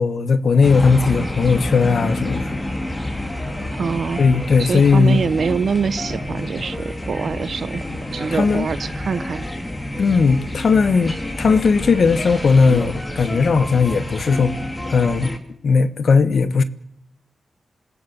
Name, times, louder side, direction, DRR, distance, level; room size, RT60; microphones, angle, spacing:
voice 1, 0.0-2.5 4.2-5.2 8.3-8.7 10.0-14.5 14.8-15.3 15.6-16.6, left 5 dB, 65° left, 1.3 m, -17 dB
sound 1, 0.6-15.4, left 1 dB, 20° left, 2.6 m, -28 dB
voice 2, 3.8-4.2 4.6-7.9 8.1-9.5, right 6 dB, 70° right, 1.0 m, -24 dB
27.0 x 16.5 x 7.1 m
cardioid pair, 75°, 0 cm